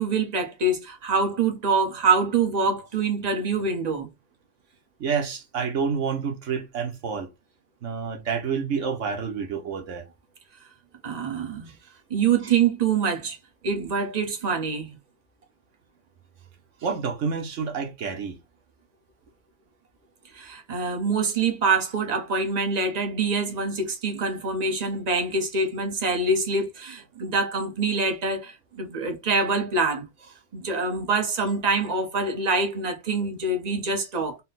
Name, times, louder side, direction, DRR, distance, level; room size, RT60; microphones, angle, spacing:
voice 1, 0.0-4.1 11.0-11.7 12.1-13.4 13.6-15.0 20.3-30.1 30.5-34.4, right 4 dB, 35° right, 1.0 m, -25 dB
voice 2, 5.0-7.3 7.8-10.0 11.7-11.8 12.4-12.5 16.8-18.4, right 6 dB, 75° right, 1.3 m, -28 dB
4.2 x 2.1 x 3.9 m
omnidirectional pair, 1.3 m